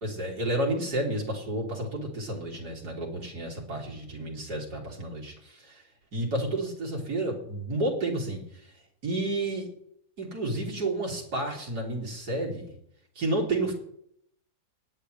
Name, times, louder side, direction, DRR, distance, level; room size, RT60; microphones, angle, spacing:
voice 1, 0.0-5.8 6.1-8.7 9.0-9.7 10.2-12.7 13.2-13.7, right 1 dB, 75° right, -3 dB, 3.8 m, -31 dB
20.0 x 9.1 x 3.4 m, 0.69 s
omnidirectional pair, 1.8 m